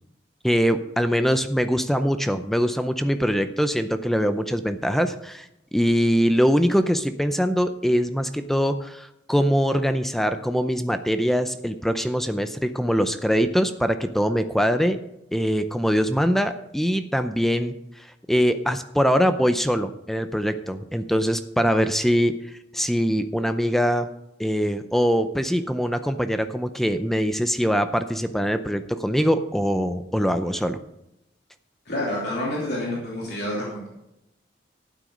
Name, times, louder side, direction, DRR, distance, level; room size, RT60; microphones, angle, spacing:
voice 1, 0.4-15.0 15.3-17.7 18.3-22.3 22.7-24.1 24.4-30.8, equal, ahead, 9 dB, 0.5 m, -23 dB
voice 2, 31.8-33.9, left 1 dB, 60° left, -5 dB, 3.0 m, -28 dB
12.0 x 9.2 x 5.2 m, 0.85 s
head